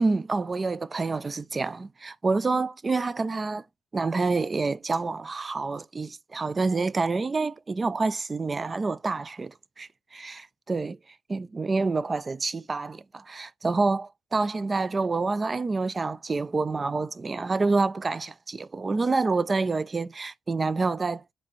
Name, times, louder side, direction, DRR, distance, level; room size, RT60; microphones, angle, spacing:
voice 1, 0.0-3.6 3.9-9.9 10.1-10.4 10.7-11.0 11.3-21.2, right 3 dB, 30° right, 0.3 m, -27 dB
4.3 x 4.1 x 3.0 m
cardioid pair, 90°, 0 cm